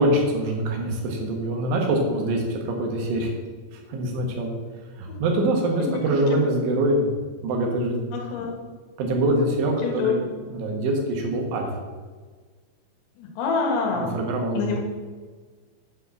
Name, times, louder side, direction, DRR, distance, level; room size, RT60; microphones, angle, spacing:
voice 1, 0.0-3.3 3.7-4.5 5.0-7.1 7.4-8.1 9.0-10.2 10.5-11.7 13.9-14.7, right 1 dB, 65° right, 1 dB, 3.1 m, -24 dB
voice 2, 5.8-6.4 8.1-8.6 9.8-10.2 13.2-14.1 14.6-14.8, left 5 dB, 80° left, 0 dB, 4.2 m, -27 dB
9.6 x 4.4 x 6.9 m, 1.5 s
omnidirectional pair, 6.0 m